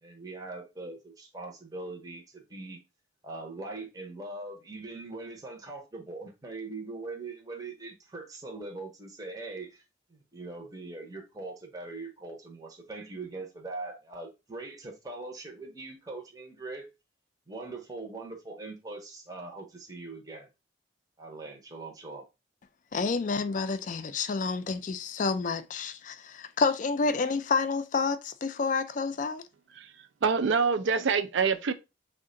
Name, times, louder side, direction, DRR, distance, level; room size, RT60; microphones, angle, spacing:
voice 1, 0.0-2.8 3.2-9.8 10.1-16.9 17.5-20.5 21.2-22.2, right 3 dB, 20° right, 0.6 m, -41 dB
voice 2, 22.9-29.4, left 4 dB, 40° left, 0.3 m, -29 dB
voice 3, 29.7-31.7, right 5 dB, 75° right, 0.4 m, -26 dB
3.6 x 2.1 x 3.6 m
head